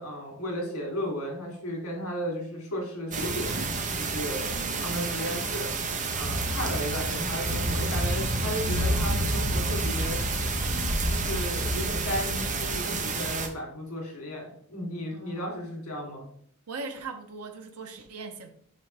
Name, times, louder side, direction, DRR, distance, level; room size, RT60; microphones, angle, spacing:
voice 1, 0.0-5.7 6.1-10.2 11.0-16.2, equal, 85° left, 2.8 m, -34 dB
sound 1, 3.1-13.5, right 2 dB, 35° right, 0.8 m, -29 dB
voice 2, 4.5-4.9 15.1-15.5 16.7-18.5, right 4 dB, 90° right, 0.7 m, -40 dB
6.2 x 5.4 x 3.2 m
head